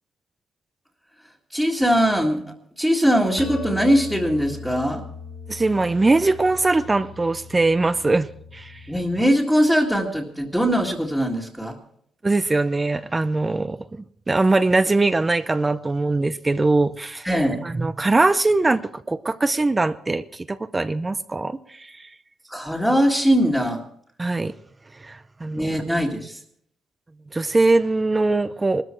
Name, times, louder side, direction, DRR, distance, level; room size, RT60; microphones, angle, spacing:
voice 1, 1.5-5.0 8.9-11.8 17.2-17.6 22.5-23.8 25.5-26.4, equal, ahead, -4 dB, 2.0 m, -21 dB
sound 1, 3.4-9.2, left 4 dB, 45° left, 2.7 m, -39 dB
voice 2, 5.5-8.8 12.2-17.3 17.6-22.1 24.2-24.5 24.9-25.7 27.3-28.8, right 2 dB, 20° right, 12 dB, 0.6 m, -22 dB
19.0 x 13.5 x 4.6 m, 0.66 s
cardioid pair, 90°, 0 cm